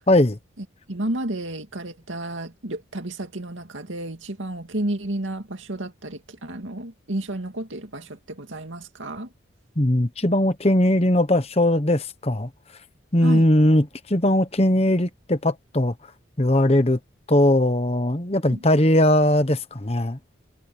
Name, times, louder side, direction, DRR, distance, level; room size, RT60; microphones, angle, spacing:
voice 1, 0.1-0.4 9.8-12.5 13.1-15.9 16.4-17.0 17.3-20.2, left 1 dB, 30° left, 1.1 m, -19 dB
voice 2, 0.6-9.3 13.2-13.4 18.5-18.6, right 1 dB, 90° right, 2.4 m, -32 dB
head